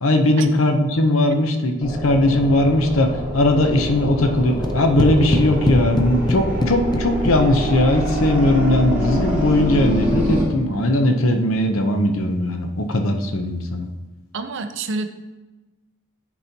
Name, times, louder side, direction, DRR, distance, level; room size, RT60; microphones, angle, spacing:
voice 1, 0.0-13.9, left 1 dB, 70° left, 6 dB, 0.8 m, -19 dB
sound 1, 1.8-10.4, equal, 10° right, 2.2 m, -25 dB
sound 2, 4.6-7.9, left 1 dB, 20° left, 0.4 m, -23 dB
voice 2, 14.3-15.1, right 3 dB, 60° right, 8 dB, 0.5 m, -27 dB
9.9 x 4.3 x 2.9 m, 1.2 s
head